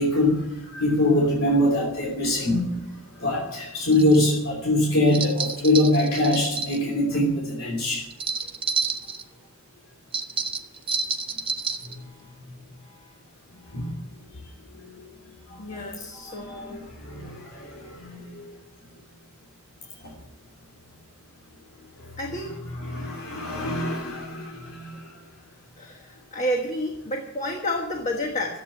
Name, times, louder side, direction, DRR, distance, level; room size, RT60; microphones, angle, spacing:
voice 1, 0.0-2.7 3.2-8.0 11.9-12.0 13.7-13.9 14.7-14.9 15.5-15.8 16.1-18.5 20.0-20.1 22.7-25.1, left 1 dB, 70° left, -2 dB, 3.1 m, -24 dB
sound 1, 3.9-4.2 5.1-6.8 8.1-9.2 10.1-12.0, right 5 dB, 25° right, 1.0 m, -29 dB
voice 2, 15.6-16.9 22.2-22.6 25.8-28.6, equal, 35° left, 2 dB, 1.4 m, -31 dB
14.0 x 8.4 x 8.5 m, 0.95 s
head